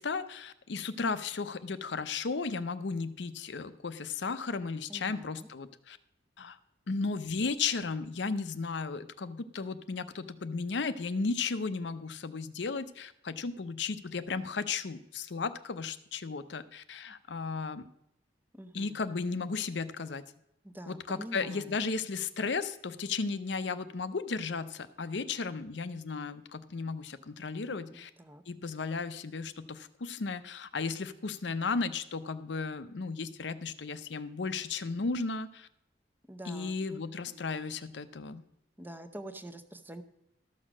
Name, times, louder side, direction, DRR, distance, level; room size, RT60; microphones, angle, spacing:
voice 1, 0.0-6.0 6.4-6.6 6.9-17.9 18.7-20.2 20.9-28.1 28.5-35.7 36.5-38.4, left 4 dB, 70° left, 13 dB, 0.6 m, -35 dB
voice 2, 4.9-5.5 18.5-19.0 20.6-21.8 27.9-28.4 36.3-37.5 38.8-40.0, right 1 dB, 10° right, 9 dB, 0.7 m, -46 dB
13.0 x 6.5 x 6.1 m, 0.80 s
head